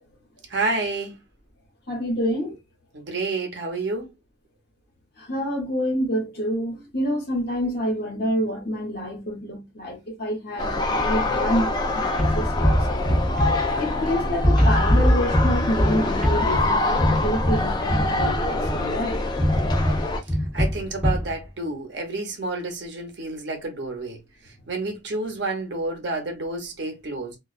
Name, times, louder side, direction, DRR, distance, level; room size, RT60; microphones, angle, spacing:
voice 1, 0.5-1.2 2.9-4.1 20.5-27.4, right 2 dB, 60° right, 0.8 m, -29 dB
voice 2, 1.9-2.6 5.3-13.2 13.8-19.2, equal, 55° left, 1.1 m, -27 dB
sound 1, 10.6-20.2, left 2 dB, 20° left, 0.3 m, -25 dB
sound 2, 12.2-14.1 14.4-18.9 19.4-21.3, equal, ahead, 1.0 m, -22 dB
2.3 x 2.2 x 2.4 m
head